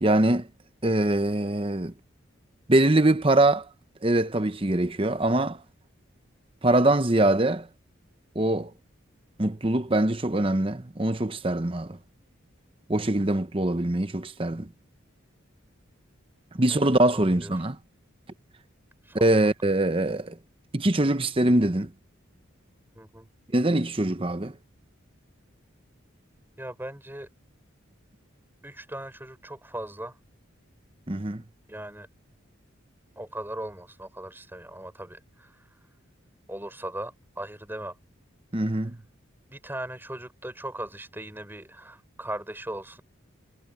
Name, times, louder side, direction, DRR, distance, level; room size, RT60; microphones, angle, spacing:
voice 1, 0.0-0.5 0.8-1.9 2.7-3.7 4.0-5.6 6.6-7.7 8.3-8.7 9.4-12.0 12.9-14.7 16.6-17.8 19.2-20.4 20.7-21.9 23.5-24.5 31.1-31.4 38.5-39.0, right 1 dB, 25° right, 0.9 m, -23 dB
voice 2, 16.7-17.5 19.0-19.5 22.9-23.3 26.6-27.3 28.6-30.2 31.7-32.1 33.2-35.6 36.5-38.0 39.5-43.0, right 1 dB, 10° right, 6.4 m, -38 dB
head